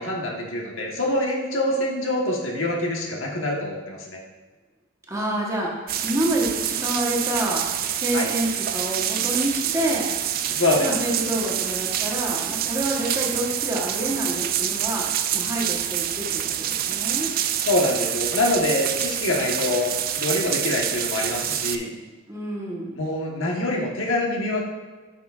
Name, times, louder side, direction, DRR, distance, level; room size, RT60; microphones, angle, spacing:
voice 1, 0.0-4.2 8.1-8.3 10.5-10.9 17.6-22.0 23.0-24.6, left 1 dB, 90° left, -1 dB, 1.3 m, -25 dB
voice 2, 5.1-5.7 6.0-7.6 8.0-10.1 10.8-15.0 15.3-17.3 22.3-22.9, right 1 dB, 15° right, -3 dB, 1.2 m, -27 dB
sound 1, 5.9-21.8, right 10 dB, 50° right, 0.4 m, -27 dB
8.6 x 5.9 x 2.4 m, 1.3 s
head